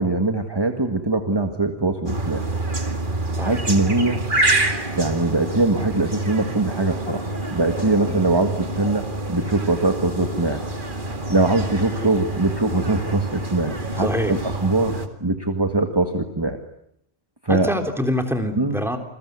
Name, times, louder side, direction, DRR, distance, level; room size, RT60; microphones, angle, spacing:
voice 1, 0.0-2.4 3.4-4.2 4.9-10.6 11.3-16.6 17.4-17.7 18.6-18.8, right 2 dB, 20° right, 6 dB, 1.9 m, -22 dB
sound 1, 2.1-15.1, right 2 dB, 50° right, 2.5 m, -27 dB
voice 2, 14.0-14.3 17.5-19.0, equal, ahead, 5 dB, 3.4 m, -25 dB
28.5 x 21.5 x 9.6 m, 0.74 s
omnidirectional pair, 1.1 m